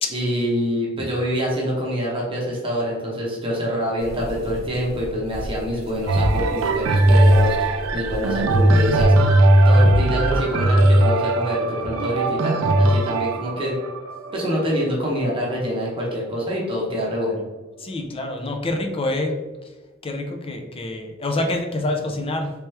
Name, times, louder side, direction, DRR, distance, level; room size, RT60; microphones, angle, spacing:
voice 1, 0.1-9.3 9.6-13.8 14.3-17.4, equal, 25° right, -3 dB, 0.8 m, -26 dB
sound 1, 4.0-9.1, equal, 85° left, 1.2 m, -33 dB
sound 2, 6.1-15.9 16.5-16.6, right 1 dB, 80° right, 0.4 m, -18 dB
voice 2, 17.8-19.4 20.0-22.5, left 2 dB, 30° left, 4 dB, 0.5 m, -26 dB
3.3 x 3.0 x 3.2 m, 1.2 s
head